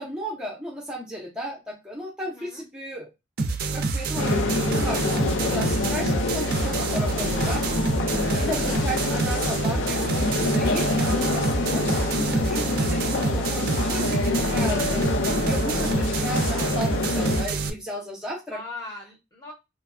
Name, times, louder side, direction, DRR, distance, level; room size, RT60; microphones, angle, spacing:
voice 1, 0.0-3.1 3.7-18.6, equal, 5° right, -3 dB, 0.6 m, -35 dB
voice 2, 2.2-2.6 8.5-8.9 18.5-19.5, left 2 dB, 20° left, 0 dB, 0.8 m, -40 dB
sound 1, 3.4-17.7, right 3 dB, 50° right, 0.4 m, -27 dB
sound 2, 4.1-17.4, left 3 dB, 80° left, 0.5 m, -26 dB
2.9 x 2.2 x 2.4 m, 0.23 s
head